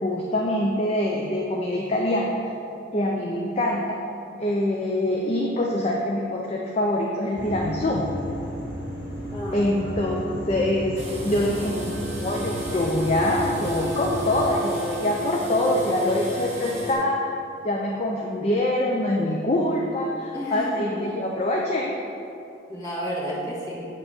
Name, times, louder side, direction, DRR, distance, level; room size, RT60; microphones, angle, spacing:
voice 1, 0.0-2.4 2.9-4.0 4.4-8.1 9.5-17.2 17.6-21.9, left 1 dB, 35° left, -1 dB, 0.4 m, -24 dB
sound 1, 7.4-14.5, equal, 65° left, 1.4 m, -34 dB
voice 2, 9.3-10.2 20.3-21.0 22.7-23.9, equal, 20° left, -7 dB, 1.6 m, -32 dB
sound 2, 11.0-16.9, equal, 35° right, 1.6 m, -32 dB
8.7 x 3.0 x 5.9 m, 2.7 s
head